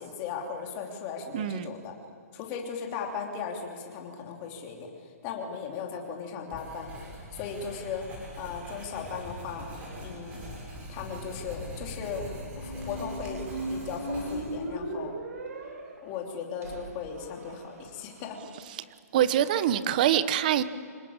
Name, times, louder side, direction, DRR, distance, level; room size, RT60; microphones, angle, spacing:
voice 1, 0.0-1.9 2.3-4.9 5.2-6.9 7.3-8.1 8.4-9.7 10.0-10.4 10.9-12.3 12.5-15.2 16.0-18.5, left 6 dB, 20° left, 3.1 m, -37 dB
voice 2, 1.3-1.7 18.7-18.8 19.1-20.6, right 10 dB, 30° right, 1.0 m, -24 dB
Writing, 6.5-14.7, equal, 15° right, 7.0 m, -42 dB
sound 1, 12.3-18.2, right 1 dB, 65° right, 7.5 m, -38 dB
26.0 x 22.0 x 8.9 m
hypercardioid pair, 170°, 9 cm